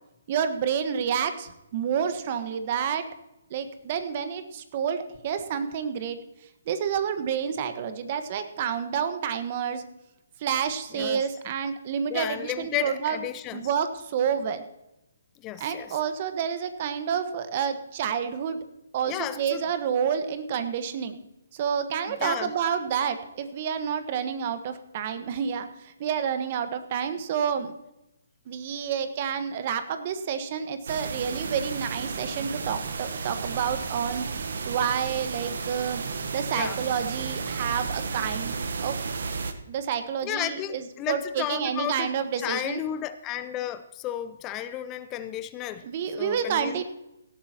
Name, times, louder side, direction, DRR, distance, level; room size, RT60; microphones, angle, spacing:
voice 1, 0.3-3.0 3.5-6.2 6.7-9.8 10.4-13.2 13.5-14.6 15.6-18.6 18.9-21.2 21.5-27.7 28.5-34.2 34.6-36.0 36.3-39.0 39.7-42.8 45.8-46.8, right 7 dB, 40° right, 9 dB, 1.4 m, -29 dB
voice 2, 10.9-11.2 12.1-13.7 15.4-15.9 19.1-19.6 22.1-22.5 36.5-36.8 40.2-42.1 42.4-45.8 46.2-46.8, left 12 dB, 20° left, 13 dB, 0.6 m, -33 dB
sound 1, 30.9-39.5, right 4 dB, 65° right, 1.1 m, -33 dB
18.0 x 12.5 x 3.0 m, 0.90 s
figure-of-eight pair, 135°, 0 cm